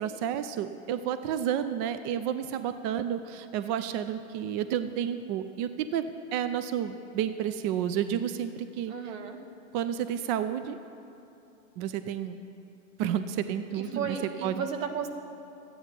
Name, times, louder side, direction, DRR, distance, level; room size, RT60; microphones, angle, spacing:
voice 1, 0.0-6.1 6.3-8.9 9.7-10.8 11.8-12.4 13.0-14.2 14.4-14.7, right 9 dB, 35° right, 11 dB, 0.4 m, -31 dB
voice 2, 8.9-9.4 13.7-15.1, right 6 dB, 75° right, 5 dB, 1.4 m, -34 dB
12.5 x 9.3 x 5.8 m, 2.8 s
hypercardioid pair, 120°, 40 cm